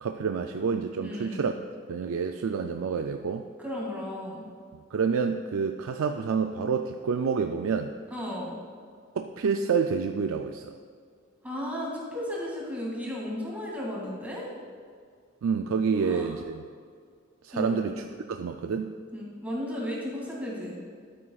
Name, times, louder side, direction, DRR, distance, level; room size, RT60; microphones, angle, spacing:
voice 1, 0.0-1.5 1.9-3.4 4.9-7.9 9.2-10.7 15.4-16.6 17.4-18.0 18.3-18.9, right 5 dB, 80° right, 6 dB, 0.4 m, -28 dB
voice 2, 1.0-1.5 3.6-4.4 8.1-8.6 11.4-14.5 16.0-16.4 17.5-17.9 19.1-20.8, left 1 dB, 10° right, -4 dB, 2.3 m, -34 dB
12.5 x 8.9 x 2.4 m, 2.1 s
head